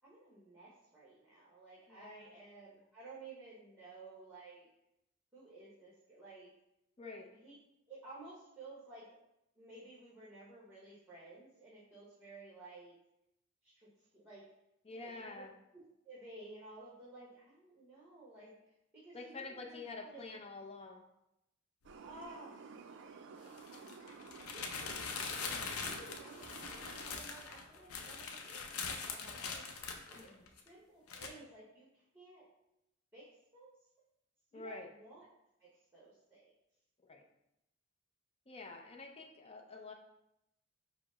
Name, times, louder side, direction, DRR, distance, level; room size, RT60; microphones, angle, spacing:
voice 1, 0.0-4.7 5.3-6.5 7.4-7.5 7.9-9.1 9.6-12.9 13.6-14.4 14.9-15.4 15.7-18.5 19.0-20.4 22.0-22.6 24.5-29.7 30.1-32.5 33.1-33.7 34.5-35.3 35.6-36.4, right 2 dB, 10° right, -8 dB, 1.0 m, -55 dB
voice 2, 1.9-2.3 7.0-7.3 14.8-15.5 19.1-21.0 30.1-30.5 34.5-34.9 37.0-37.2 38.5-39.9, left 3 dB, 30° left, 2 dB, 0.5 m, -48 dB
sound 1, 21.8-27.2, right 5 dB, 60° right, 0.4 m, -53 dB
sound 2, 21.9-22.0 23.5-30.7 31.1-31.3, left 5 dB, 85° left, 0.5 m, -42 dB
4.9 x 2.1 x 4.8 m, 0.85 s
head